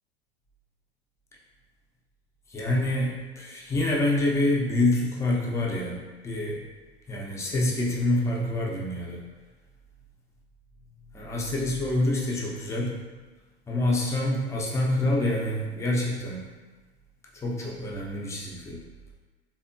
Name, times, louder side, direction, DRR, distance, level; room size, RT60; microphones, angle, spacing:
voice 1, 2.5-6.6 7.1-9.2 11.1-12.9 13.7-16.4 17.3-18.8, left 1 dB, 10° left, -3 dB, 0.4 m, -26 dB
3.4 x 2.2 x 2.5 m, 1.3 s
figure-of-eight pair, 85°, 33 cm